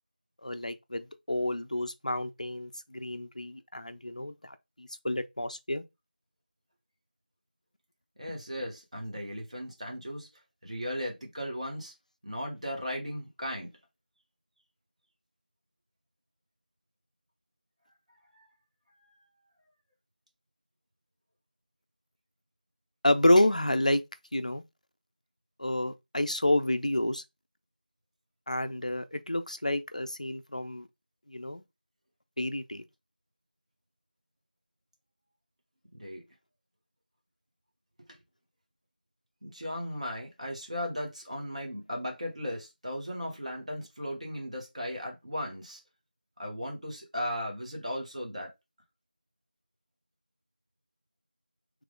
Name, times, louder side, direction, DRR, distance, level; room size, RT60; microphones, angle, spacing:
voice 1, 0.4-5.8 23.0-24.0 24.3-24.6 25.6-27.2 28.5-30.9 31.3-31.6 32.4-32.8, left 1 dB, 45° left, 0.4 m, -29 dB
voice 2, 8.2-11.9 12.2-13.7 18.3-18.5 35.9-36.2 38.0-38.2 39.4-45.8 46.4-48.5, equal, 40° right, 0.9 m, -37 dB
3.0 x 2.0 x 3.7 m
figure-of-eight pair, 175°, 5 cm